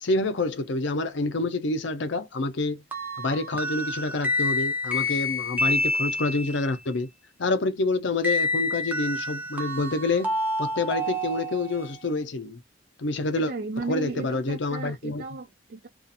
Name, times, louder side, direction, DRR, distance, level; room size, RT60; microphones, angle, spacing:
voice 1, 0.0-2.8 3.2-7.1 7.4-10.3 10.6-12.6 13.0-13.5 13.9-15.2, left 3 dB, 60° left, 0.6 m, -27 dB
sound 1, 2.9-6.6 8.2-12.0, left 1 dB, 10° right, 0.7 m, -28 dB
voice 2, 13.3-15.9, right 3 dB, 50° right, 0.4 m, -35 dB
2.7 x 2.4 x 2.4 m
head